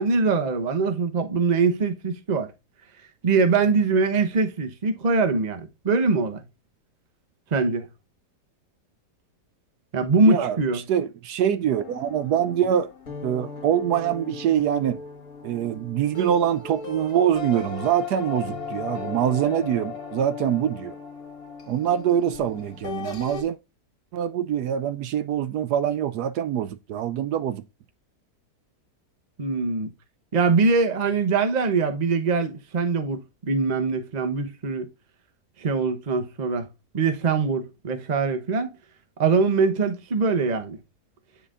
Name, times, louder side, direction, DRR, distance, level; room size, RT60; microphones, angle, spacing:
voice 1, 0.0-2.5 3.2-6.4 7.5-7.9 9.9-10.8 29.4-29.9 30.3-34.9 35.6-36.7 36.9-38.7 39.2-40.8, right 4 dB, 30° right, 0.9 m, -23 dB
voice 2, 10.2-10.6 10.9-12.9 13.2-15.0 15.4-20.9 21.7-23.6 24.1-27.6, right 9 dB, 75° right, 1.1 m, -24 dB
sound 1, 11.7-23.4, left 5 dB, 60° left, 1.9 m, -37 dB
9.7 x 4.5 x 2.5 m
omnidirectional pair, 1.8 m